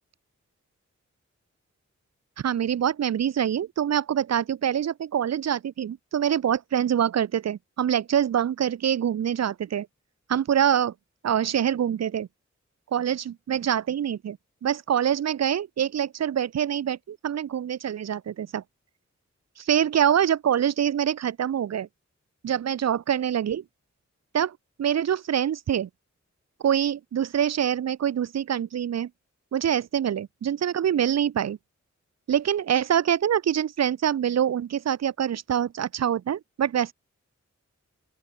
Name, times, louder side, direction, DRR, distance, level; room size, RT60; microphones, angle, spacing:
voice 1, 2.4-9.9 10.3-10.9 11.2-12.3 12.9-18.6 19.6-21.9 22.4-23.6 24.3-25.9 26.6-29.1 29.5-31.6 32.3-36.9, right 9 dB, 60° right, 0.5 m, -25 dB
open air
cardioid pair, 40°, 30 cm